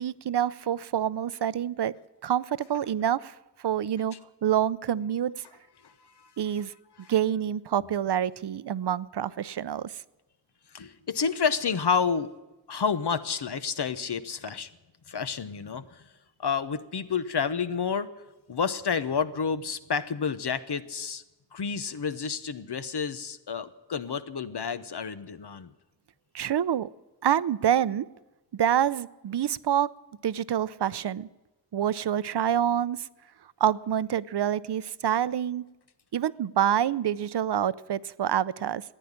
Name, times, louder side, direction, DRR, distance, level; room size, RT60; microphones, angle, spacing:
voice 1, 0.0-1.9 2.2-3.3 3.6-4.1 4.4-5.4 6.4-6.7 7.1-10.0 26.3-26.9 27.2-28.1 28.5-29.9 30.2-31.3 31.7-33.1 33.6-35.7 36.1-38.8, right 10 dB, 70° right, 18 dB, 0.6 m, -27 dB
voice 2, 5.8-6.3 7.0-7.1 10.7-12.3 12.7-14.7 15.1-16.0 16.4-18.1 18.5-21.2 21.5-25.7, left 6 dB, 70° left, 12 dB, 0.9 m, -30 dB
14.5 x 9.9 x 9.9 m, 1.0 s
wide cardioid pair, 85°, 42 cm